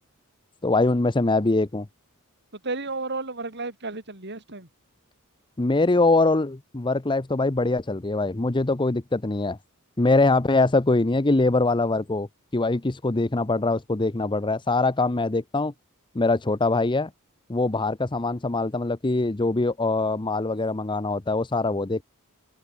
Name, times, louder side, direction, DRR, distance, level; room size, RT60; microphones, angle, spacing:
voice 1, 0.6-1.9 5.6-9.6 10.0-12.3 12.5-15.7 16.1-17.1 17.5-22.0, left 2 dB, 20° left, 0.7 m, -23 dB
voice 2, 2.6-4.7, right 3 dB, 50° right, 5.3 m, -32 dB
open air
head